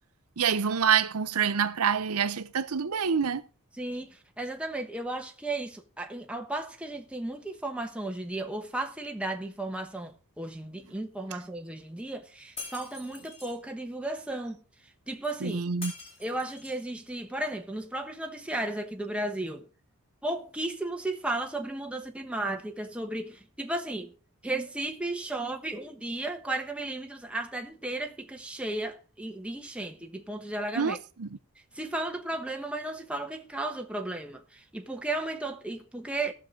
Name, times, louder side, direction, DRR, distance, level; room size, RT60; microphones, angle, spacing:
voice 1, 0.4-3.4 15.4-15.9 30.7-31.4, right 7 dB, 85° right, 0.7 m, -27 dB
voice 2, 3.8-14.6 15.1-15.6 16.2-19.6 20.2-24.1 24.4-31.0 31.8-34.4 34.7-36.3, right 2 dB, 5° right, 1.1 m, -34 dB
Shatter, 12.6-13.6 15.8-16.9, left 2 dB, 25° left, 4.8 m, -43 dB
18.0 x 6.6 x 3.8 m
head